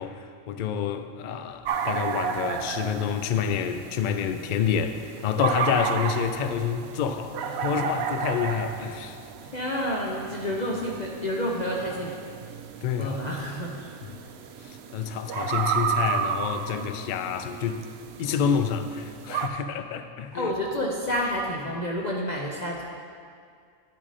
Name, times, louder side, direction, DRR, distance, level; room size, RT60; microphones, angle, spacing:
voice 1, 0.0-9.2 12.8-13.2 14.0-14.2 14.6-17.8 18.2-20.5, left 7 dB, 85° left, 8 dB, 0.4 m, -28 dB
sound 1, 1.6-19.5, right 7 dB, 65° right, 0.7 m, -33 dB
voice 2, 9.5-12.1 13.0-13.9 20.3-22.8, equal, 40° left, -2 dB, 0.7 m, -29 dB
10.5 x 6.1 x 4.1 m, 2.2 s
omnidirectional pair, 1.4 m